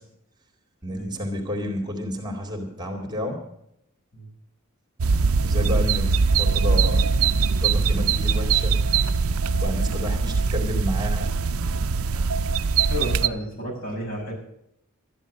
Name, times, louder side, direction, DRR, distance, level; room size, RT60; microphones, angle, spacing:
voice 1, 0.8-3.4 5.4-7.1 7.6-8.8 9.5-11.3, left 1 dB, 20° right, 2 dB, 2.4 m, -30 dB
sound 1, 5.0-13.3, right 5 dB, 70° right, 0.5 m, -22 dB
voice 2, 12.9-14.3, equal, 60° left, -2 dB, 6.7 m, -32 dB
13.0 x 10.5 x 6.4 m, 0.77 s
head